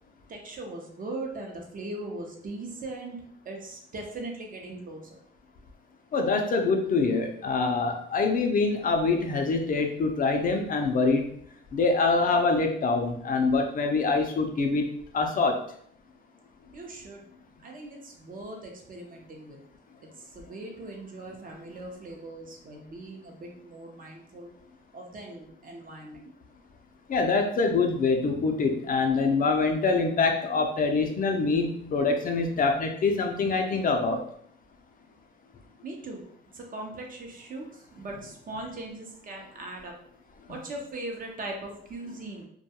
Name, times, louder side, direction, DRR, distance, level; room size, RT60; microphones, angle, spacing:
voice 1, 0.3-3.2 3.4-5.2 16.7-17.2 17.6-19.6 20.2-24.5 24.9-26.3 35.8-36.2 36.5-39.9 40.5-42.5, right 2 dB, 45° right, 1 dB, 0.6 m, -40 dB
voice 2, 6.1-11.3 11.7-14.9 15.1-15.6 27.1-34.2, left 4 dB, 45° left, 3 dB, 0.4 m, -25 dB
2.2 x 2.2 x 2.8 m, 0.64 s
cardioid pair, 90°, 20 cm